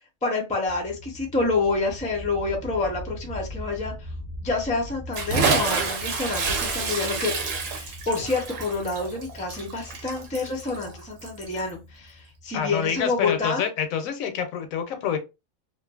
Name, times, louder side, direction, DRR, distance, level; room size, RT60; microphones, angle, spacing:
voice 1, 0.2-4.1 4.4-7.3 7.7-13.6, left 3 dB, 10° left, 0.4 m, -28 dB
sound 1, 0.7-13.1, equal, 40° right, 0.8 m, -41 dB
Bathtub (filling or washing) / Splash splatter, 5.1-11.7, right 5 dB, 70° right, 1.0 m, -28 dB
voice 2, 12.5-15.2, left 8 dB, 75° left, 1.0 m, -27 dB
2.6 x 2.5 x 2.3 m
omnidirectional pair, 1.5 m